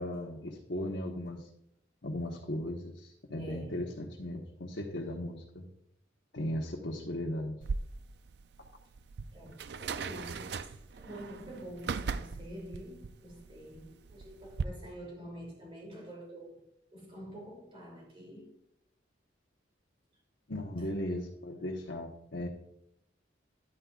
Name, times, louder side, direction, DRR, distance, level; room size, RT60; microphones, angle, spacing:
voice 1, 0.0-1.5 2.0-5.6 6.3-7.6 20.5-22.5, left 1 dB, 65° left, 1.2 m, -37 dB
voice 2, 3.4-3.8 9.3-16.6 16.9-18.5, equal, 30° right, 2.9 m, -47 dB
sound 1, 7.6-14.6, right 5 dB, 60° right, 0.4 m, -39 dB
11.5 x 9.6 x 2.4 m
head